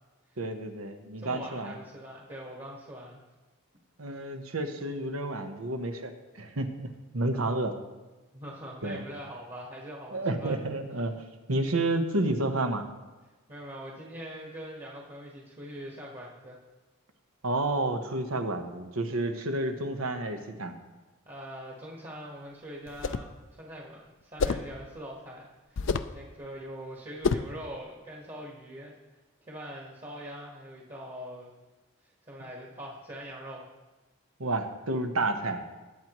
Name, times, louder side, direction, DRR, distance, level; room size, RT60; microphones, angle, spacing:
voice 1, 0.4-1.7 4.0-7.8 8.8-9.0 10.1-11.1 11.5-12.9 17.4-20.7 34.4-35.6, right 2 dB, 85° right, 6 dB, 1.1 m, -30 dB
voice 2, 1.2-3.2 7.2-7.7 8.3-10.6 13.5-16.6 21.2-23.3 23.6-25.8 26.1-29.0 29.4-31.5 32.2-33.7, equal, 30° right, -3 dB, 1.5 m, -43 dB
sound 1, 22.9-23.3 24.4-24.7 25.8-26.2 27.2-27.6, left 4 dB, 60° left, 0.4 m, -28 dB
20.0 x 7.5 x 3.1 m, 1.2 s
head